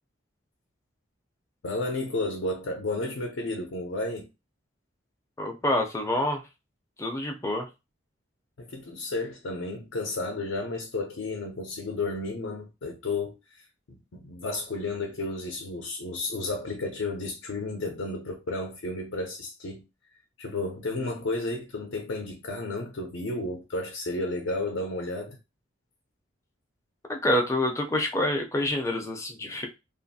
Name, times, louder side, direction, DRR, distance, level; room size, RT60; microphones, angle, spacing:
voice 1, 1.6-4.3 8.6-13.4 13.9-19.8 20.4-25.4, left 2 dB, 70° left, 0.5 m, -32 dB
voice 2, 5.4-6.4 7.0-7.7 27.1-29.7, left 1 dB, 15° left, 0.4 m, -27 dB
2.5 x 2.5 x 2.6 m
head